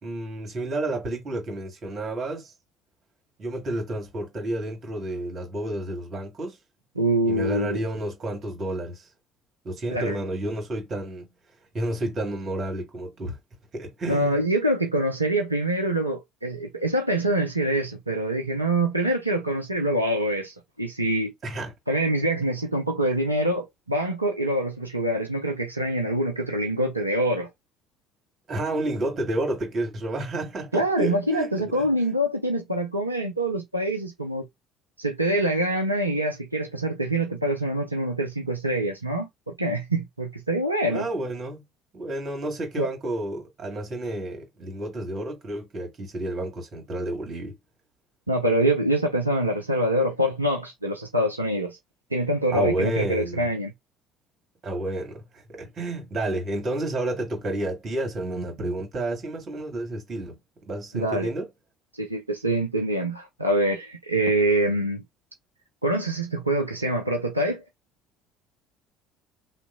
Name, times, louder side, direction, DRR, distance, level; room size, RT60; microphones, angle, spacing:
voice 1, 0.0-2.5 3.4-6.6 7.3-9.1 9.7-11.3 11.7-13.4 13.7-14.4 21.4-21.7 28.5-32.1 40.9-41.6 41.9-47.6 52.5-53.5 54.6-60.4 60.7-61.5, right 1 dB, 40° right, 1.7 m, -30 dB
voice 2, 7.0-7.8 9.9-10.2 14.1-21.3 21.9-27.5 30.7-34.5 35.0-41.1 42.8-42.9 48.3-51.8 52.1-53.7 60.9-61.3 61.9-65.0 65.8-67.6, right 1 dB, 90° right, 0.4 m, -25 dB
2.9 x 2.4 x 3.5 m
figure-of-eight pair, 55°, 0 cm